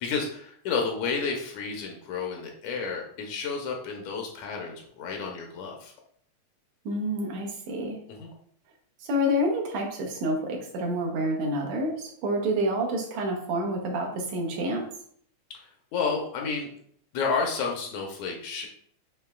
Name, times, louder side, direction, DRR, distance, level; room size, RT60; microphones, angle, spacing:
voice 1, 0.0-5.9 8.2-8.3 15.9-16.7 17.1-18.7, left 5 dB, 80° left, 1 dB, 1.9 m, -31 dB
voice 2, 6.9-8.0 9.0-14.8, equal, 75° right, 0 dB, 2.0 m, -28 dB
6.7 x 3.0 x 2.3 m, 0.63 s
omnidirectional pair, 3.3 m